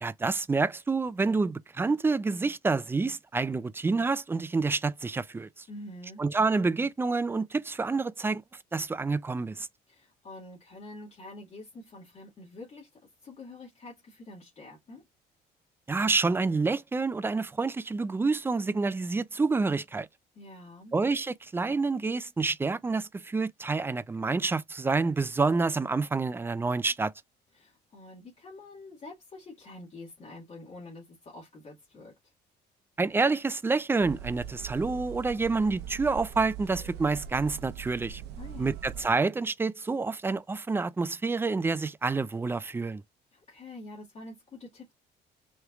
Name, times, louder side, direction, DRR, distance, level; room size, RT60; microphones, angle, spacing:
voice 1, 0.0-5.6 6.2-8.4 8.7-9.7 15.9-20.1 20.9-27.1 33.0-38.2 38.6-43.0, right 4 dB, 15° right, 0.3 m, -28 dB
voice 2, 5.7-6.2 9.9-15.0 20.4-20.9 27.5-32.3 38.4-38.8 43.3-44.9, left 2 dB, 40° left, 1.9 m, -47 dB
sound 1, 34.0-39.1, right 9 dB, 80° right, 0.7 m, -41 dB
4.7 x 3.2 x 2.3 m
cardioid pair, 110°, 17 cm